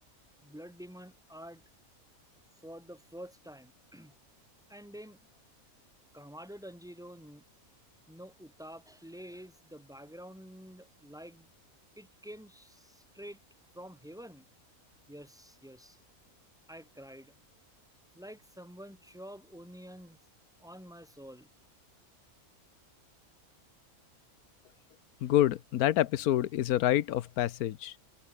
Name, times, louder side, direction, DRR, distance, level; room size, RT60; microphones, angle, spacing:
voice 1, 0.4-1.6 2.6-4.1 4.7-5.2 6.1-7.4 8.1-11.5 12.0-13.4 13.7-14.4 15.1-16.0 16.7-17.3 18.1-20.2 20.6-21.5, equal, ahead, 3.4 m, -48 dB
voice 2, 25.2-27.9, left 13 dB, 85° left, 1.2 m, -27 dB
omnidirectional pair, 1.5 m